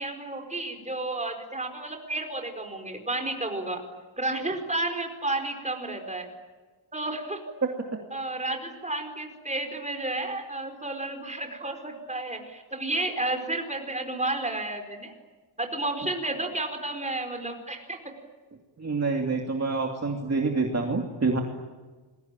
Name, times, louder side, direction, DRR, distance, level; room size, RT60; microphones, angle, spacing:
voice 1, 0.0-3.8 4.2-6.3 6.9-7.4 8.1-15.1 15.6-18.0, right 2 dB, 15° right, 4 dB, 4.8 m, -31 dB
voice 2, 18.8-21.4, right 3 dB, 30° right, 2 dB, 2.7 m, -27 dB
29.5 x 22.0 x 9.1 m, 1.3 s
wide cardioid pair, 140°, 48 cm